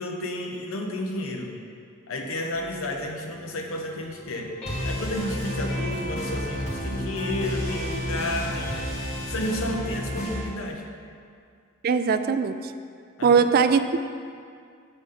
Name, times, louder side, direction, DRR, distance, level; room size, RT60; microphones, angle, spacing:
voice 1, 0.0-1.5 2.1-4.5 4.8-8.8 9.3-10.8 13.2-13.4, left 1 dB, 90° left, 2 dB, 0.9 m, -31 dB
sound 1, 2.5-3.3 3.7-10.4, equal, 35° left, 2.1 m, -31 dB
voice 2, 11.8-12.7 13.2-14.0, right 5 dB, 50° right, 10 dB, 0.3 m, -20 dB
7.8 x 7.1 x 3.8 m, 2.3 s
head